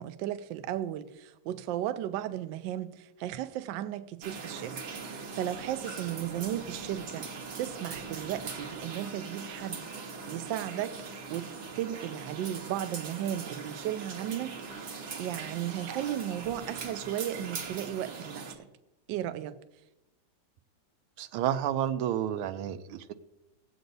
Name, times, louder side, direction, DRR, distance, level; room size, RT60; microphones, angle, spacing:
voice 1, 0.0-7.3 7.6-10.9 11.3-11.5 11.8-18.7 19.1-19.6, right 12 dB, 75° right, 1.2 m, -35 dB
sound 1, 4.2-18.6, right 4 dB, 55° right, 1.6 m, -41 dB
voice 2, 21.2-23.1, right 10 dB, 90° right, 1.5 m, -30 dB
18.0 x 7.9 x 2.6 m
omnidirectional pair, 2.3 m